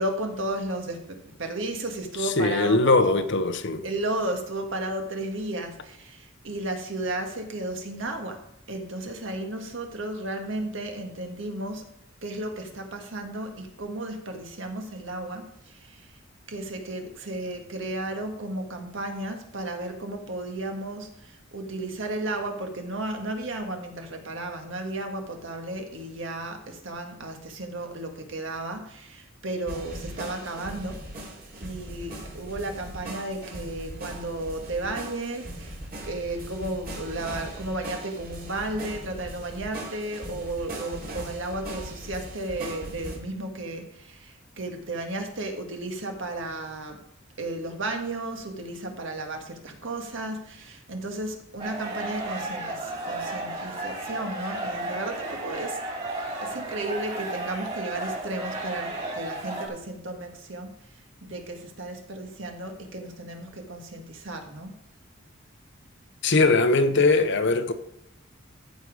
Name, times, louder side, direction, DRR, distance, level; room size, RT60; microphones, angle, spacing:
voice 1, 0.0-3.2 3.8-8.4 8.7-11.9 12.2-16.2 16.5-31.0 31.6-35.8 36.0-47.0 47.4-55.8 56.4-60.7 61.2-64.8, right 2 dB, 70° right, 1.7 m, -34 dB
voice 2, 2.2-3.8 66.2-67.7, left 3 dB, 60° left, 0.9 m, -21 dB
sound 1, 29.7-43.2, right 1 dB, 50° right, 2.7 m, -39 dB
sound 2, 51.6-59.7, right 2 dB, 30° right, 3.0 m, -33 dB
14.5 x 5.3 x 4.9 m
head